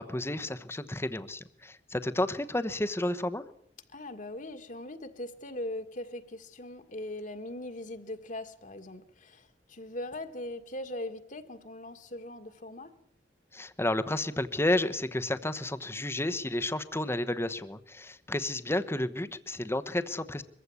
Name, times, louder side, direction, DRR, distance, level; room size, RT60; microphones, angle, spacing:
voice 1, 0.0-3.4 13.5-20.4, left 1 dB, 15° left, 1.0 m, -31 dB
voice 2, 3.9-13.0, left 1 dB, 45° left, 1.8 m, -40 dB
23.5 x 15.5 x 9.7 m
head